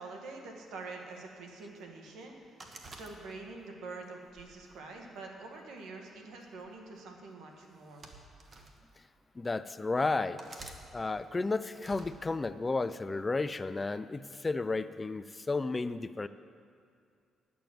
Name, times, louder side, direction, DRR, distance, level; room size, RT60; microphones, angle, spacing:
voice 1, 0.0-8.0, right 3 dB, 80° right, 2 dB, 1.6 m, -46 dB
sound 1, 2.6-3.7 4.3-5.4 6.4-6.7 7.7-8.7 9.4-9.5 10.4-10.8 11.7-12.1, right 3 dB, 40° right, 1.2 m, -50 dB
voice 2, 9.4-16.3, left 3 dB, 25° left, 13 dB, 0.3 m, -33 dB
10.5 x 7.0 x 7.7 m, 2.3 s
cardioid pair, 90°, 0 cm